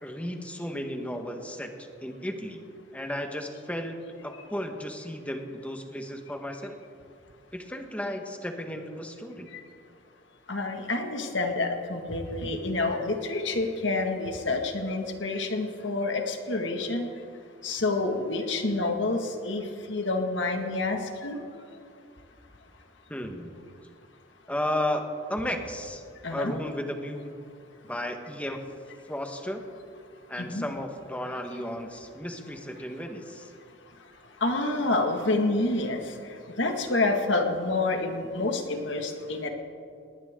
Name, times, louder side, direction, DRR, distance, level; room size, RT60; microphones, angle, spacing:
voice 1, 0.0-2.6 2.9-6.8 7.5-9.5 23.1-23.5 24.5-25.0 25.3-26.0 26.3-27.4 27.9-28.6 29.1-29.6 30.3-33.5, left 1 dB, 5° left, 4 dB, 1.4 m, -34 dB
voice 2, 10.5-17.1 17.6-19.6 19.9-21.4 26.2-26.5 30.4-30.6 34.4-36.0 36.6-39.5, left 2 dB, 70° left, 4 dB, 2.0 m, -28 dB
20.0 x 19.0 x 3.8 m, 2.3 s
head